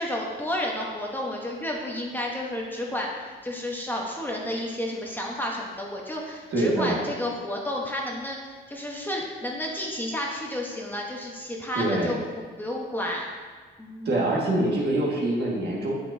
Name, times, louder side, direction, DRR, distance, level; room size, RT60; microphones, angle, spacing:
voice 1, 0.0-12.2 12.6-13.3 13.8-14.2, left 1 dB, 10° left, -2 dB, 1.1 m, -31 dB
voice 2, 6.5-7.1 11.8-12.2 14.1-15.9, right 1 dB, 55° right, -3 dB, 1.9 m, -25 dB
7.7 x 6.8 x 2.7 m, 1.4 s
cardioid pair, 90°, 20 cm